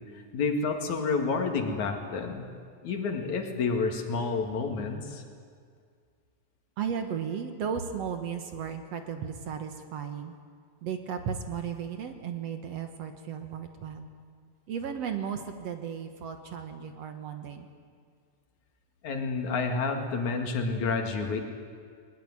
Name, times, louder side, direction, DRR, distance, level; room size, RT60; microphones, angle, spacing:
voice 1, 0.0-2.5 2.8-5.2 19.0-21.4, left 4 dB, 70° left, 4 dB, 3.5 m, -29 dB
voice 2, 6.8-10.3 10.8-14.1 14.7-17.7, right 7 dB, 60° right, 7 dB, 2.2 m, -35 dB
21.0 x 20.5 x 9.8 m, 2.1 s
omnidirectional pair, 3.5 m